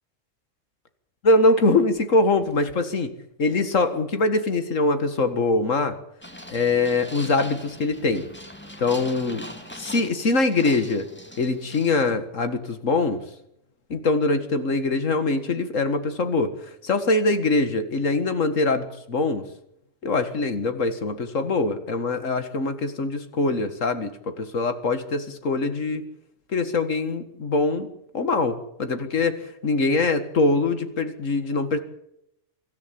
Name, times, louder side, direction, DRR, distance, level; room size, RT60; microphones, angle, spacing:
voice 1, 1.3-3.1 3.4-6.0 6.5-8.2 8.8-9.4 9.7-11.1 11.4-13.2 13.9-16.5 16.8-19.4 20.0-26.0 26.5-27.9 28.1-31.8, left 3 dB, 90° left, 9 dB, 2.2 m, -23 dB
sound 1, 6.2-12.1, left 1 dB, 10° left, 2.2 m, -41 dB
24.0 x 13.0 x 8.8 m, 0.79 s
omnidirectional pair, 1.3 m